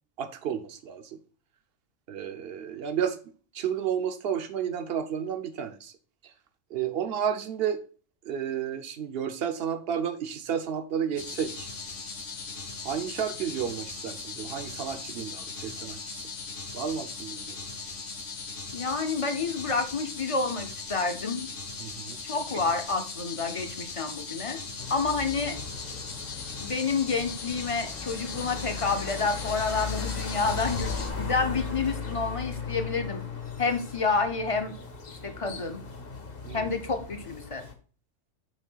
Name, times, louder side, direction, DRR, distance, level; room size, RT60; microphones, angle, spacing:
voice 1, 0.2-1.2 2.1-3.2 3.5-5.9 6.2-6.3 6.7-7.8 8.2-11.7 12.8-16.3 16.7-17.6 21.8-22.2 36.4-36.7, right 8 dB, 55° right, 8 dB, 0.9 m, -32 dB
sound 1, 11.2-31.1, left 4 dB, 70° left, 1.7 m, -39 dB
voice 2, 18.7-21.5 22.2-24.6 24.9-25.6 26.6-33.3 33.6-34.7 35.1-35.8 36.5-37.6, left 4 dB, 30° left, 7 dB, 0.7 m, -29 dB
sound 2, 24.8-37.7, left 5 dB, 50° left, 1.2 m, -37 dB
7.3 x 3.2 x 5.5 m, 0.40 s
omnidirectional pair, 1.3 m